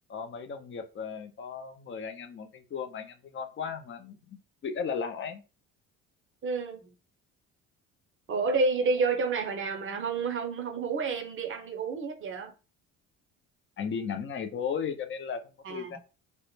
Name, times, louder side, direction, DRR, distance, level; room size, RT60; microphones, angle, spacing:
voice 1, 0.1-5.4 13.8-15.4 15.7-16.0, left 6 dB, 35° left, 0.5 m, -35 dB
voice 2, 6.4-6.9 8.3-12.5 15.6-16.0, right 4 dB, 35° right, 0.6 m, -30 dB
2.1 x 2.0 x 3.1 m
supercardioid pair, 75°, 36 cm